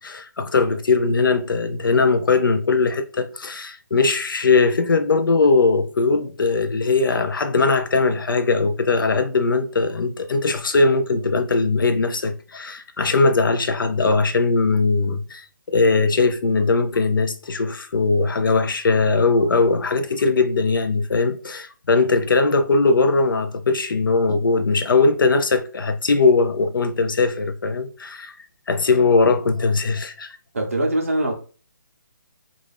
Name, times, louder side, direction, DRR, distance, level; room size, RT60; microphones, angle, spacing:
voice 1, 0.0-28.3 28.7-30.3, left 3 dB, 80° left, 0.5 m, -20 dB
voice 2, 30.5-31.3, right 1 dB, 40° right, 0.7 m, -22 dB
2.5 x 2.4 x 3.3 m
hypercardioid pair, 175°, 11 cm